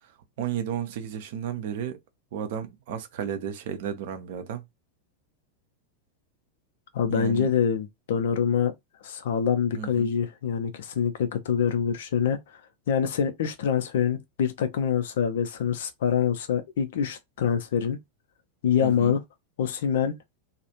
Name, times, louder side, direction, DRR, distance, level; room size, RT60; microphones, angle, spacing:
voice 1, 0.4-2.0 2.3-4.6 7.1-7.5 9.7-10.1 18.8-19.1, right 9 dB, 50° right, 0.5 m, -33 dB
voice 2, 6.9-8.7 9.0-12.4 12.9-18.0 18.6-19.2 19.6-20.1, left 7 dB, 60° left, 0.5 m, -25 dB
2.3 x 2.1 x 2.8 m
figure-of-eight pair, 90°, 0 cm